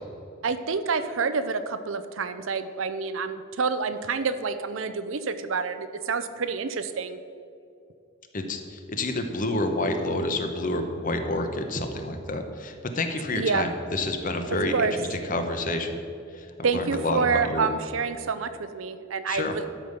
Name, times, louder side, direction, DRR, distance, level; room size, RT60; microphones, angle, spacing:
voice 1, 0.4-7.2 13.3-13.7 14.7-14.9 16.6-19.6, right 5 dB, 70° right, 11 dB, 0.6 m, -28 dB
voice 2, 8.3-16.0 16.3-16.5 16.7-17.7 19.3-19.5, left 2 dB, 40° left, 6 dB, 0.9 m, -29 dB
12.0 x 5.3 x 6.7 m, 2.5 s
head